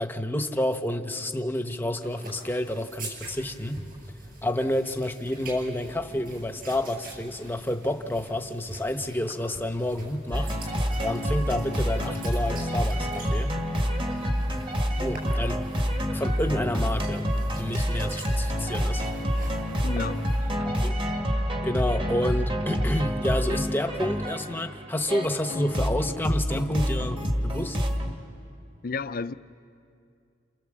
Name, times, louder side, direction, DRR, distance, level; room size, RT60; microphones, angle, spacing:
voice 1, 0.0-3.8 4.4-10.5 11.0-13.6 15.0-15.6 16.1-17.3 17.6-19.0 20.6-20.9 21.6-27.8, left 1 dB, 10° left, 1.0 m, -29 dB
sound 1, 2.0-20.5, right 2 dB, 50° right, 6.2 m, -45 dB
sound 2, 10.3-28.1, equal, 30° right, 2.0 m, -28 dB
voice 2, 19.8-20.2 28.8-29.3, left 4 dB, 50° left, 0.6 m, -31 dB
29.0 x 27.5 x 7.5 m
head